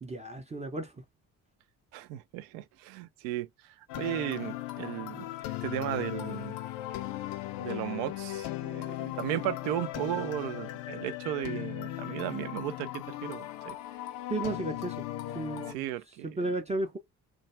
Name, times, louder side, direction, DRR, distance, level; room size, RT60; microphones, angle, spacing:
voice 1, 0.0-0.9 14.3-15.1 15.3-15.8 16.2-17.0, right 2 dB, 15° right, 0.5 m, -33 dB
voice 2, 1.9-5.3 5.6-6.6 7.6-13.8 15.7-16.5, right 13 dB, 60° right, 0.5 m, -35 dB
sound 1, 3.9-15.8, left 15 dB, 50° left, 0.5 m, -37 dB
2.3 x 2.2 x 2.9 m
figure-of-eight pair, 40°, 46 cm